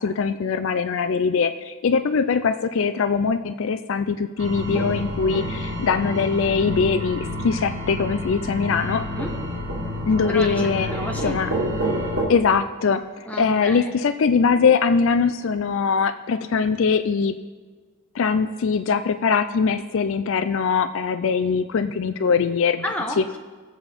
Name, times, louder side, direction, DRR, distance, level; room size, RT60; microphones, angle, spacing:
voice 1, 0.0-9.0 10.1-10.9 11.2-11.5 12.3-17.4 18.1-22.8 23.2-23.3, left 5 dB, 65° left, 11 dB, 0.4 m, -22 dB
sound 1, 4.4-12.2, equal, 85° right, 2.3 m, -28 dB
voice 2, 8.9-9.3 10.3-11.4 13.3-13.9 22.8-23.4, equal, 5° left, 1 dB, 0.9 m, -31 dB
18.5 x 7.4 x 3.5 m, 1.4 s
head